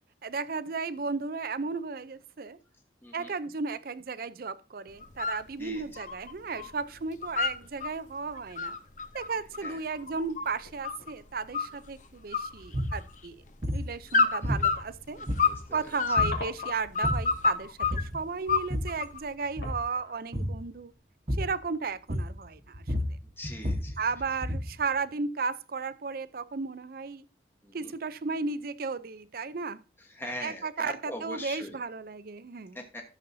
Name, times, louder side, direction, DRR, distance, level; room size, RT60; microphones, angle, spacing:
voice 1, 0.2-2.6 3.1-8.8 9.1-13.4 13.7-15.3 15.7-20.9 21.4-22.8 24.0-27.2 27.7-29.8 30.2-32.8, right 4 dB, 55° right, 0.5 m, -34 dB
sound 1, 4.9-5.1 7.4-8.6 9.0-9.1 9.6-9.7 10.6-11.2 11.6-11.9 12.9-13.2 13.5-13.7 14.2-14.3 14.6-17.2 17.5-17.9 19.1-19.2 19.6-21.8 22.2-22.5 23.0-23.1, left 3 dB, 80° left, 2.5 m, -48 dB
sound 2, 5.0-5.4 5.8-6.7 7.0-7.9 8.4-11.1 11.5-12.0 12.3-13.3 14.1-15.6 16.0-18.0 18.5-19.2, left 4 dB, 40° left, 0.7 m, -28 dB
sound 3, 12.7-13.0 13.6-13.9 14.4-14.9 15.3-15.7 16.2-16.5 16.8-17.4 17.8-18.2 18.5-19.0 19.5-19.9 20.3-20.6 21.3-21.6 22.1-22.5 22.7-24.8, equal, 35° right, 1.1 m, -31 dB
voice 2, 15.2-15.9 23.4-24.0 27.6-27.9 30.1-31.8 32.7-33.0, left 1 dB, 10° left, 1.2 m, -41 dB
13.5 x 7.0 x 2.7 m
head